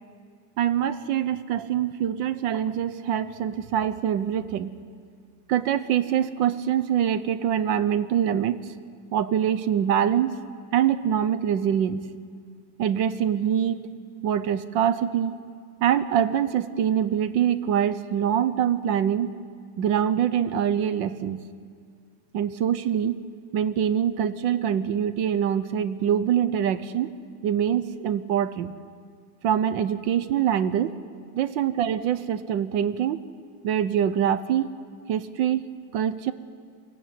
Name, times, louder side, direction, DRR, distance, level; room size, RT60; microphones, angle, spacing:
voice 1, 0.6-4.7 5.5-8.7 9.1-10.4 10.7-12.1 12.8-13.9 14.2-15.4 15.8-19.3 19.8-21.4 22.3-23.2 23.5-27.1 27.4-28.7 29.4-31.0 31.3-33.2 33.6-34.7 35.1-35.7 35.9-36.3, right 9 dB, 70° right, 13 dB, 1.4 m, -24 dB
22.5 x 16.5 x 9.4 m, 2.1 s
omnidirectional pair, 2.3 m